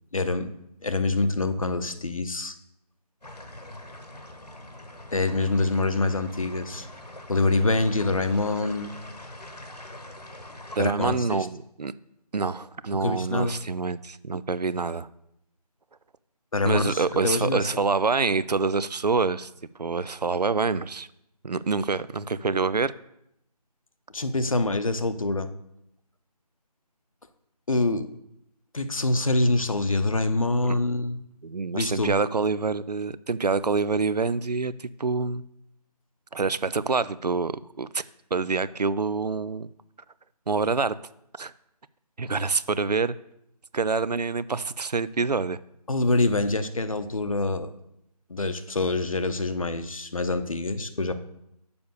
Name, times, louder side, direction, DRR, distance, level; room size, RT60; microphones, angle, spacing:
voice 1, 0.1-0.5 0.8-2.6 5.1-6.9 7.3-8.9 10.8-11.5 13.0-13.6 16.5-17.8 24.1-25.5 27.7-28.1 28.7-31.2 31.7-32.1 45.9-47.7 48.3-51.1, left 2 dB, 55° left, 0.8 m, -25 dB
sound 1, 3.2-10.8, left 1 dB, 80° left, 1.4 m, -43 dB
voice 2, 10.8-11.9 12.3-15.1 16.7-19.5 19.8-21.1 21.4-22.9 30.6-30.8 31.4-35.4 36.3-38.0 38.3-39.7 40.5-40.9 41.4-41.5 42.2-43.2 43.7-45.6, right 4 dB, 75° right, 0.5 m, -26 dB
6.9 x 5.2 x 6.7 m
figure-of-eight pair, 160°, 21 cm